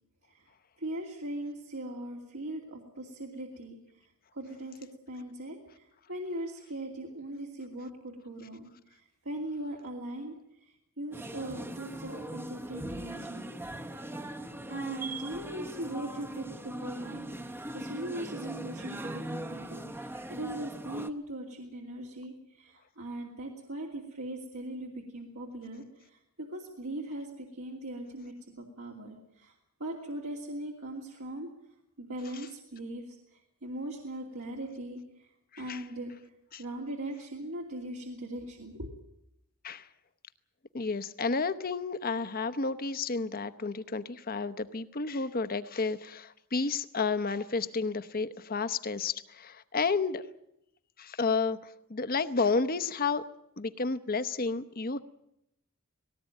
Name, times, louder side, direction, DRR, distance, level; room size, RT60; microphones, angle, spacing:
voice 1, 0.8-13.5 14.7-29.5 29.8-31.5 32.0-35.3 35.6-36.1 36.6-38.9, right 1 dB, 80° right, -2 dB, 2.8 m, -40 dB
sound 1, 11.1-21.1, right 1 dB, 10° right, 0.9 m, -40 dB
voice 2, 40.7-50.2 51.0-53.2 53.6-55.0, left 4 dB, 40° left, 12 dB, 0.9 m, -31 dB
19.0 x 17.5 x 9.1 m, 0.82 s
head